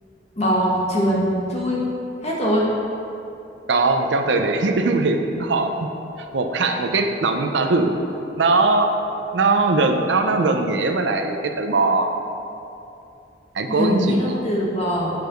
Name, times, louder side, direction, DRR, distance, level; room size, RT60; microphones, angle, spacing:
voice 1, 0.3-1.8 2.2-2.7 13.7-15.1, equal, 40° left, -4 dB, 1.6 m, -22 dB
voice 2, 3.7-5.9 6.3-8.0 8.3-8.9 9.3-12.1 13.5-14.4, right 3 dB, 85° right, 5 dB, 0.6 m, -20 dB
7.0 x 4.8 x 6.2 m, 2.8 s
head